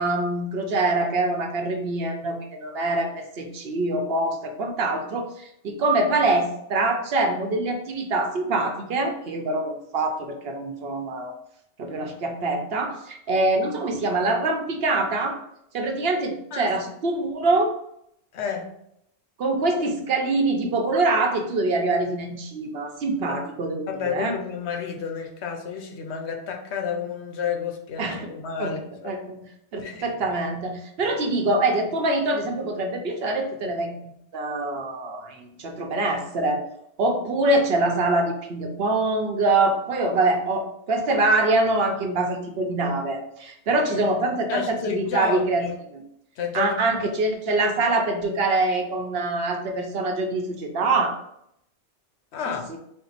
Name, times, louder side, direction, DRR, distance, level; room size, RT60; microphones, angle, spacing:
voice 1, 0.0-11.3 11.8-15.4 15.7-17.7 19.4-24.3 28.0-28.3 28.6-28.8 29.0-29.4 29.7-33.9 34.3-36.6 37.0-45.6 45.9-46.0 46.5-51.2 52.7-52.8, right 2 dB, 65° right, 3 dB, 0.8 m, -24 dB
voice 2, 18.3-18.7 23.3-23.4 23.9-29.1 29.8-30.1 44.5-45.7 46.4-47.0 52.3-52.7, left 7 dB, 75° left, 2 dB, 0.9 m, -31 dB
4.3 x 2.1 x 4.0 m, 0.74 s
omnidirectional pair, 1.2 m